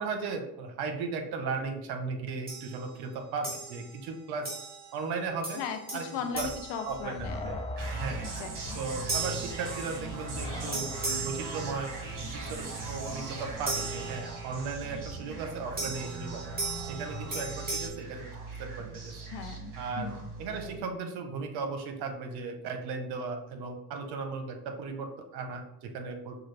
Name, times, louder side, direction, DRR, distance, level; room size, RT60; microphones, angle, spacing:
voice 1, 0.0-4.5 4.9-5.6 5.9-6.1 6.3-6.5 6.8-7.6 8.0-8.3 8.7-11.9 12.3-16.4 16.9-18.3 18.6-19.1 19.8-20.1 20.4-26.4, right 4 dB, 70° right, 5 dB, 0.9 m, -36 dB
sound 1, 2.5-2.9 3.4-4.0 4.5-5.0 5.4-7.6 9.1-10.3 10.7-12.2 13.7-14.7 15.8-17.9, right 3 dB, 25° right, 1.6 m, -37 dB
voice 2, 5.5-7.6 8.4-8.8 19.3-20.3, left 6 dB, 80° left, 7 dB, 0.7 m, -38 dB
sound 2, 6.3-14.5, left 1 dB, 15° left, 0.4 m, -42 dB
sound 3, 7.8-20.8, right 3 dB, 50° right, 1.4 m, -39 dB
6.0 x 2.4 x 3.2 m, 0.81 s
supercardioid pair, 85°, 39 cm